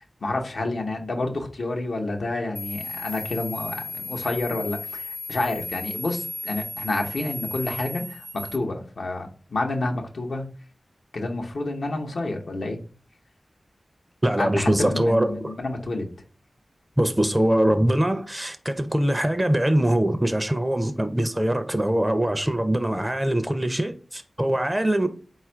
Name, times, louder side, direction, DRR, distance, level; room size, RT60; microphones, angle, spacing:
voice 1, 0.2-10.5 11.1-12.8 14.4-16.1, left 2 dB, 75° left, 0.7 m, -29 dB
sound 1, 2.6-8.6, left 2 dB, 50° left, 0.5 m, -35 dB
voice 2, 14.2-15.6 17.0-25.1, right 1 dB, 15° right, 0.4 m, -23 dB
4.1 x 2.4 x 4.3 m
wide cardioid pair, 65°, 0 cm